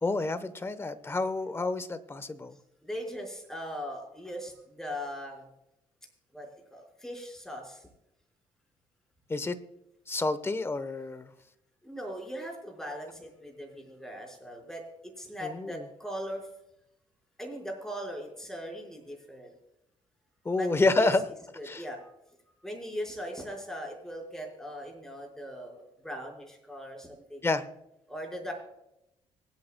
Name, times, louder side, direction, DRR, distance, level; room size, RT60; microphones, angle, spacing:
voice 1, 0.0-2.6 9.3-9.6 10.1-11.3 15.4-15.8 20.4-21.3 21.6-21.8 27.4-27.7, left 3 dB, 20° left, 13 dB, 1.0 m, -29 dB
voice 2, 2.8-5.5 6.3-7.9 11.8-14.8 15.2-16.5 17.4-19.5 20.5-20.7 21.0-21.1 21.6-22.1 22.6-27.4 28.1-28.5, equal, 5° left, 0 dB, 5.0 m, -39 dB
25.5 x 8.9 x 2.2 m, 0.84 s
cardioid pair, 95°, 12 cm